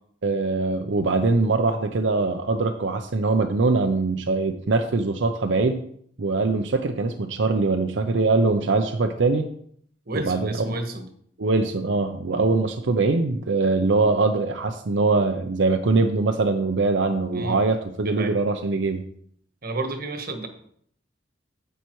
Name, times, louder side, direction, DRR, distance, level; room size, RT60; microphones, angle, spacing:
voice 1, 0.2-5.8 6.2-9.5 10.1-10.7 11.4-19.0, right 3 dB, 70° right, 6 dB, 0.7 m, -22 dB
voice 2, 10.1-11.1 17.3-17.6 18.0-18.3 19.6-20.5, right 2 dB, 55° right, 6 dB, 1.3 m, -31 dB
10.0 x 8.2 x 3.1 m, 0.64 s
head